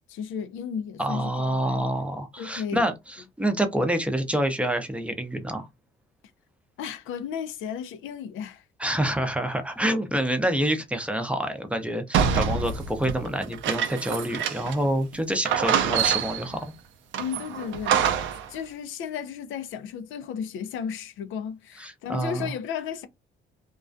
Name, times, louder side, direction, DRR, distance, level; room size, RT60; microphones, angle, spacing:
voice 1, 0.0-1.9 2.4-2.9 6.8-8.6 17.2-18.2 18.5-23.1, left 7 dB, 80° left, 0.4 m, -34 dB
voice 2, 1.0-2.9 3.4-5.7 8.8-16.7 21.8-22.5, right 1 dB, 5° right, 0.5 m, -27 dB
sound 1, 12.1-14.9 15.1-15.2 15.5-16.6 17.1-18.5, right 8 dB, 75° right, 0.4 m, -26 dB
2.4 x 2.2 x 2.4 m
cardioid pair, 90°, 20 cm